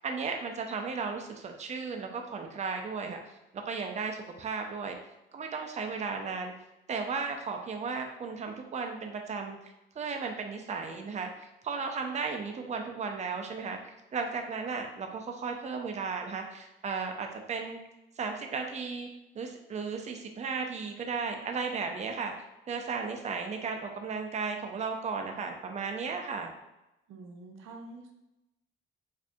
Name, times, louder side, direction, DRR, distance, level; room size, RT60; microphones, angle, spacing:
voice 1, 0.0-3.2 3.7-5.0 5.3-6.5 6.9-9.6 10.0-11.3 11.6-13.8 14.1-17.8 18.2-19.1 19.3-22.3 22.7-26.5, right 5 dB, 35° right, 3 dB, 0.5 m, -35 dB
voice 2, 27.1-28.1, right 2 dB, 85° right, 3 dB, 0.6 m, -46 dB
4.7 x 2.7 x 2.4 m, 0.93 s
cardioid pair, 90°, 20 cm